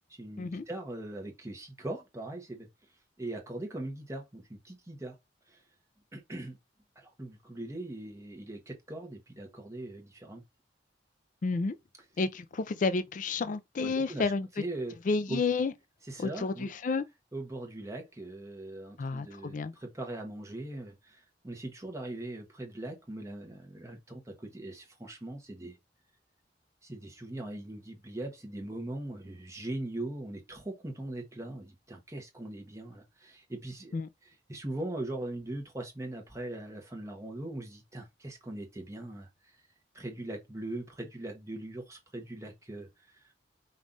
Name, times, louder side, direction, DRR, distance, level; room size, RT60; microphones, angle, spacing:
voice 1, 0.2-2.7 3.2-5.2 5.5-5.6 6.1-6.6 7.0-10.4 13.8-14.3 14.6-15.0 15.3-15.4 16.1-16.7 17.3-25.8 26.8-39.6 39.9-43.3, right 1 dB, 15° right, 0.9 m, -40 dB
voice 2, 11.4-11.8 12.2-14.5 15.1-15.7 16.2-17.0 19.0-19.7 33.9-34.1, left 4 dB, 45° left, 0.4 m, -30 dB
5.3 x 2.4 x 3.8 m
head